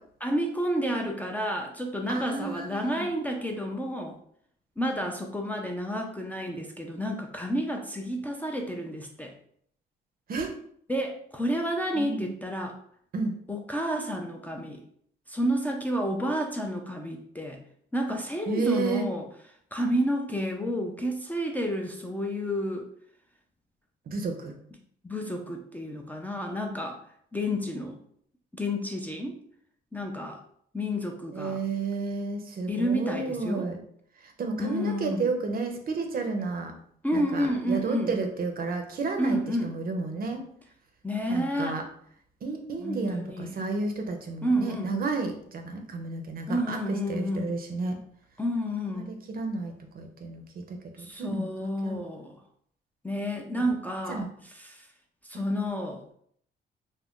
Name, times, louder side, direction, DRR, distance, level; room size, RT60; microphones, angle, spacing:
voice 1, 0.2-4.2 4.8-9.3 10.9-12.8 13.5-14.8 15.3-17.6 17.9-19.3 19.7-22.9 25.0-27.0 27.3-28.0 28.5-29.4 29.9-30.4 30.7-31.6 32.7-33.7 34.6-35.2 37.0-38.1 39.2-39.7 41.0-41.8 42.8-43.6 44.4-44.9 46.5-47.5 48.4-49.1 51.0-52.4 53.0-54.3 54.6-54.9 55.3-56.0, equal, 10° left, 1 dB, 0.4 m, -30 dB
voice 2, 2.1-3.1 10.3-10.5 11.9-12.3 13.1-13.4 18.5-19.1 24.1-24.5 27.8-27.9 31.3-33.8 34.2-36.7 37.1-40.5 41.3-41.8 42.4-48.0 48.9-51.5 51.8-52.0 53.3-53.4 54.1-54.3 55.3-55.4, right 3 dB, 50° right, 4 dB, 0.6 m, -32 dB
2.4 x 2.1 x 3.6 m, 0.64 s
cardioid pair, 90°, 20 cm